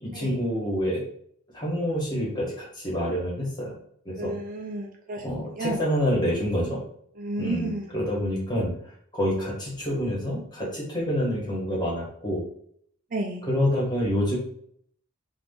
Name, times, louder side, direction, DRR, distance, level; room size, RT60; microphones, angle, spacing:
voice 1, 0.0-1.0 1.5-3.7 4.0-4.3 5.2-6.8 7.4-8.7 9.1-12.4 13.4-14.4, equal, 20° left, -4 dB, 1.1 m, -27 dB
voice 2, 4.2-5.8 7.2-7.9 13.1-13.5, right 2 dB, 40° right, 0 dB, 0.4 m, -32 dB
2.6 x 2.4 x 3.6 m, 0.65 s
head